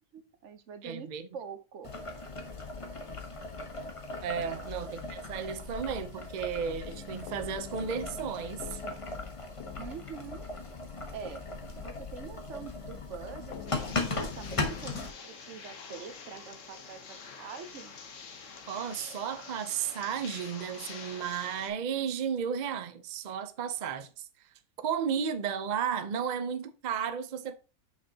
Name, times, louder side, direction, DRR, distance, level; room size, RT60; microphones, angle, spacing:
voice 1, 0.1-1.9 4.4-4.8 9.8-10.5 11.1-11.4 11.8-17.9, right 6 dB, 55° right, 1.0 m, -45 dB
voice 2, 0.8-1.3 4.2-8.8 18.7-24.3 24.8-27.6, right 7 dB, 75° right, 0.4 m, -34 dB
Boiling, 1.8-15.1, left 3 dB, 25° left, 0.9 m, -38 dB
sound 1, 6.8-15.1, left 9 dB, 75° left, 1.3 m, -49 dB
sound 2, 13.7-21.7, left 5 dB, 55° left, 1.3 m, -46 dB
6.7 x 5.9 x 2.8 m
omnidirectional pair, 1.7 m